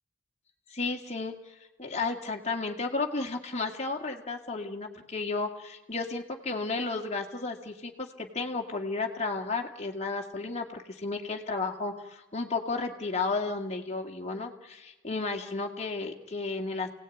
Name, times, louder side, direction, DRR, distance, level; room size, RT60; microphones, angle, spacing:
voice 1, 0.7-16.9, left 3 dB, 30° left, 3 dB, 2.1 m, -33 dB
28.5 x 18.0 x 9.3 m, 1.1 s
head